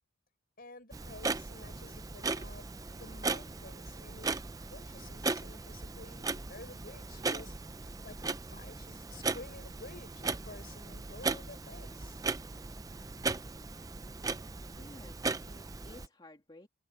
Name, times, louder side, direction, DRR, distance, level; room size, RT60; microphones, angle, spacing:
voice 1, 0.6-4.4 4.7-7.5 8.0-12.2, left 2 dB, 45° left, 6.0 m, -51 dB
Clock, 0.9-16.1, right 3 dB, 15° right, 0.5 m, -38 dB
voice 2, 14.7-16.7, left 1 dB, 20° left, 2.7 m, -54 dB
head